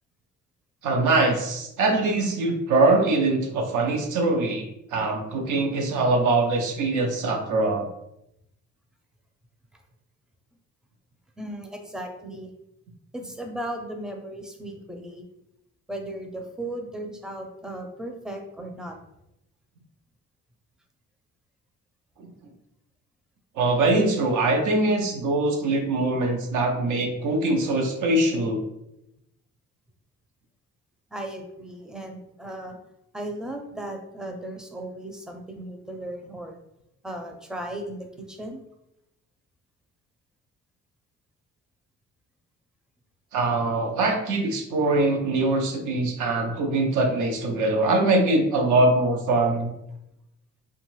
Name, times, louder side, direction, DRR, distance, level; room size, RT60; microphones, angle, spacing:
voice 1, 0.8-7.9 22.2-22.3 23.6-28.6 43.3-49.7, right 2 dB, 85° right, 3 dB, 0.6 m, -23 dB
voice 2, 11.4-12.5 13.1-15.2 15.9-19.0 31.1-32.8 33.1-36.6 37.0-38.6, right 1 dB, ahead, 3 dB, 0.4 m, -36 dB
2.6 x 2.3 x 3.1 m, 0.83 s
cardioid pair, 90°, 30 cm